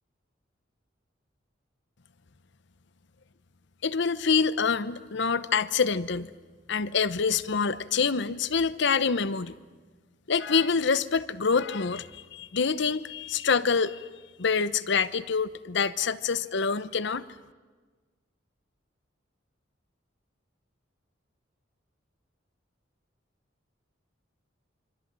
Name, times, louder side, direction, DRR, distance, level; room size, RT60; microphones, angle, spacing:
voice 1, 3.8-6.3 6.7-9.5 10.3-14.1 14.4-17.2, left 5 dB, 65° left, 15 dB, 0.8 m, -26 dB
26.5 x 25.0 x 7.6 m, 1.4 s
head